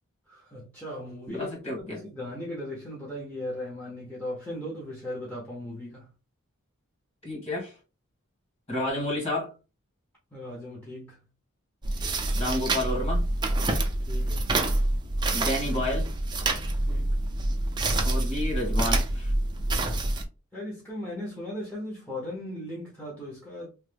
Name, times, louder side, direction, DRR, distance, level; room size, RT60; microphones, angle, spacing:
voice 1, 0.3-6.1 10.3-11.3 14.1-14.5 16.9-17.2 20.5-23.7, left 1 dB, 10° left, 0.7 m, -37 dB
voice 2, 1.3-2.0 7.2-7.7 8.7-9.5 12.3-13.2 15.3-16.1 18.0-19.3, left 1 dB, 30° left, 1.6 m, -30 dB
sound 1, 11.8-20.2, right 2 dB, 20° right, 0.4 m, -27 dB
3.1 x 2.1 x 3.3 m
head